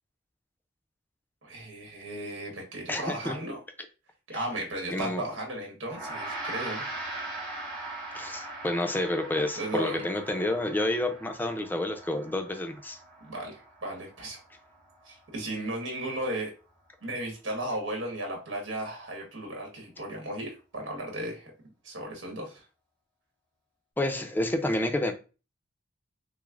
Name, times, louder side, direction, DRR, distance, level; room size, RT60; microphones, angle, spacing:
voice 1, 1.4-3.6 4.3-6.8 9.6-10.0 13.2-14.4 15.0-16.5 17.0-21.5 21.8-22.6, right 1 dB, 85° right, 1.2 m, -35 dB
voice 2, 2.9-3.4 4.9-5.2 8.1-13.0 24.0-25.1, left 1 dB, 10° left, 0.4 m, -29 dB
Gong, 5.9-15.4, right 2 dB, 30° right, 1.4 m, -40 dB
6.0 x 2.0 x 2.4 m
head